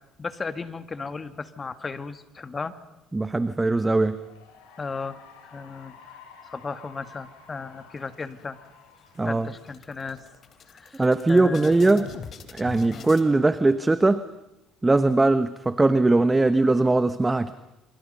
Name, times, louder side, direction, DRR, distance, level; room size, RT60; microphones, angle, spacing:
voice 1, 0.2-2.7 4.8-5.9 6.5-8.6 9.2-10.2 10.7-11.0 11.3-12.1 12.9-13.1, left 4 dB, 25° left, 11 dB, 1.8 m, -35 dB
voice 2, 3.1-4.2 9.2-9.5 11.0-12.1 12.5-14.2 14.8-17.5, right 2 dB, 15° right, 12 dB, 1.1 m, -20 dB
Cheering / Applause, 3.9-10.5, left 6 dB, 85° left, 7.1 m, -51 dB
sound 1, 7.9-8.7 9.1-9.2 9.5-13.3, left 6 dB, 45° left, 3.0 m, -44 dB
28.0 x 26.5 x 5.5 m, 0.93 s
supercardioid pair, 95°, 0 cm